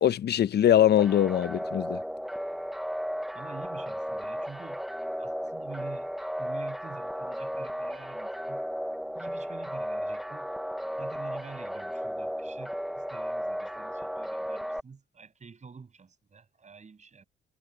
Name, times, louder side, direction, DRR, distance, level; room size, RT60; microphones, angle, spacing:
voice 1, 0.0-2.0, left 10 dB, 55° left, 0.8 m, -22 dB
sound 1, 1.0-14.8, equal, ahead, 0.7 m, -35 dB
voice 2, 3.3-4.8 5.2-8.7 9.1-10.5 11.0-17.2, right 5 dB, 35° right, 7.1 m, -47 dB
cardioid pair, 90°, 20 cm